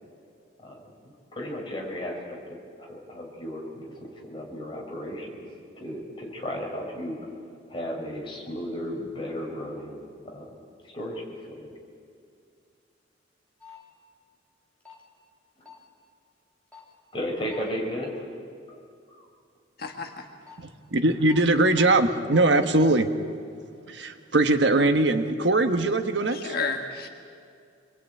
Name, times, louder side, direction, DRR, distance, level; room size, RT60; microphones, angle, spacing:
voice 1, 0.6-5.4 5.7-7.3 7.7-10.6 10.8-11.7 15.6-15.7 17.1-18.2 18.6-18.8 19.1-19.3, equal, 25° left, -1 dB, 5.1 m, -35 dB
sound 1, 13.6-13.8 14.8-15.0 15.7-15.8 16.7-16.9 17.5-17.6 20.2-20.6 21.3-21.4 21.7-21.9 22.3-22.4, left 7 dB, 10° left, 3.6 m, -47 dB
voice 2, 19.8-20.3 26.3-27.1, left 4 dB, 50° left, 3 dB, 1.7 m, -31 dB
voice 3, 20.6-23.1 23.9-26.6, right 2 dB, 70° right, 7 dB, 1.4 m, -21 dB
26.0 x 21.0 x 9.1 m, 2.3 s
head